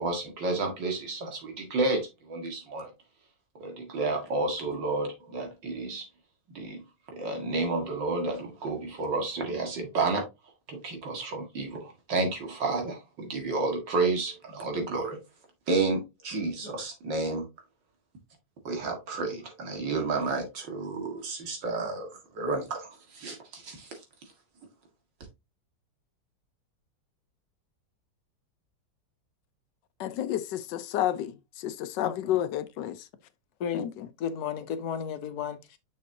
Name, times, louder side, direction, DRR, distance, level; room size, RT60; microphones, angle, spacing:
voice 1, 0.0-2.9 3.6-6.1 6.5-6.8 7.1-10.2 10.7-15.2 15.7-17.5 18.6-24.0, right 3 dB, 85° right, 2.6 m, -31 dB
voice 2, 30.0-31.3 31.6-33.0 33.7-33.9, left 12 dB, 85° left, 1.3 m, -30 dB
voice 3, 32.0-32.4 33.6-33.9 34.2-35.8, left 8 dB, 65° left, 1.4 m, -33 dB
6.5 x 6.4 x 2.7 m
omnidirectional pair, 1.9 m